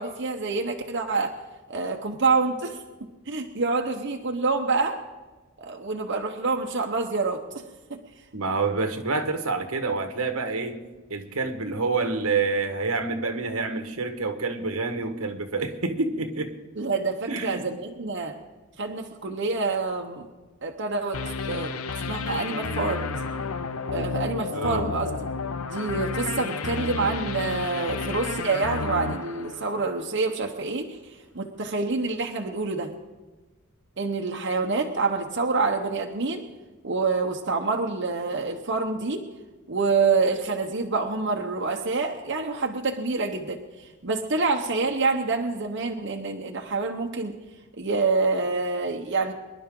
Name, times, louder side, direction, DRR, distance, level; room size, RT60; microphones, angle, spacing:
voice 1, 0.0-1.3 1.7-2.8 3.3-5.0 5.6-7.4 7.9-8.0 16.8-18.4 18.8-20.3 20.6-21.2 21.5-21.7 22.0-23.1 23.9-25.1 25.7-31.0 31.3-32.9 34.0-36.4 36.8-39.2 39.7-43.6 44.0-47.3 47.8-49.3, right 3 dB, 55° right, 2 dB, 1.0 m, -27 dB
voice 2, 8.3-10.8 11.1-16.5 17.3-17.7 24.5-24.9, right 3 dB, 85° right, 6 dB, 1.5 m, -27 dB
sound 1, 21.1-30.2, left 4 dB, 80° left, 0.7 m, -31 dB
24.0 x 11.0 x 3.8 m, 1.2 s
head